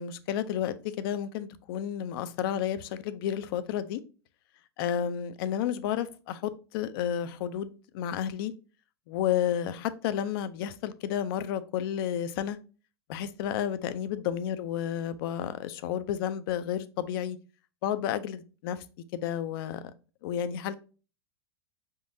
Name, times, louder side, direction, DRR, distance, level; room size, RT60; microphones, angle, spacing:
voice 1, 0.0-4.0 4.8-8.5 9.1-12.6 13.1-17.4 17.8-18.8 19.1-19.9 20.2-20.8, left 10 dB, 60° left, 0.5 m, -31 dB
5.0 x 3.7 x 2.6 m
hypercardioid pair, 115°, 13 cm